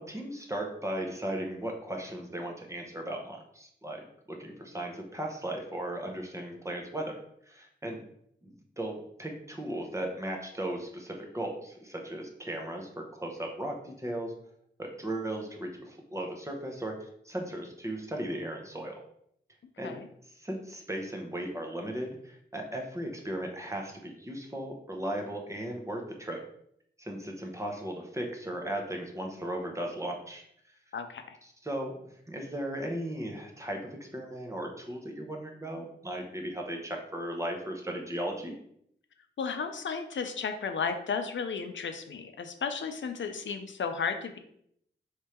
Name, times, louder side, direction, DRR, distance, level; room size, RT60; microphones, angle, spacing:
voice 1, 0.0-4.0 4.3-7.2 7.5-8.0 8.4-14.3 14.8-19.0 19.8-20.0 20.3-26.4 27.0-30.4 31.4-31.9 32.3-38.5, right 1 dB, 15° right, 1 dB, 0.8 m, -36 dB
voice 2, 30.9-31.4 39.4-44.4, left 5 dB, 80° left, 7 dB, 0.5 m, -34 dB
3.5 x 3.2 x 4.3 m, 0.70 s
wide cardioid pair, 90°, 19 cm